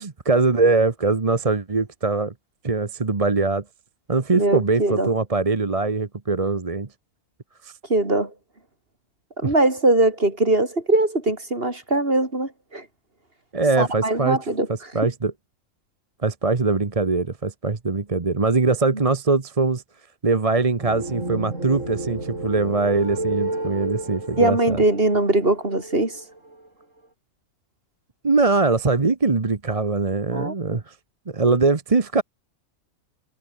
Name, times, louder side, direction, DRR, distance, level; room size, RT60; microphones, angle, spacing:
voice 1, 0.0-2.3 2.6-3.6 4.1-6.9 7.6-7.7 9.4-9.5 13.5-14.4 14.7-15.3 16.2-19.8 20.2-24.8 28.2-31.0 31.3-32.2, right 3 dB, 30° right, 1.2 m, -22 dB
voice 2, 4.3-5.1 7.9-8.3 9.4-12.8 13.8-14.7 18.9-19.0 24.4-26.2 30.3-30.5, right 2 dB, 45° right, 4.6 m, -21 dB
sound 1, 20.8-26.7, right 2 dB, 75° right, 6.6 m, -31 dB
omnidirectional pair, 1.3 m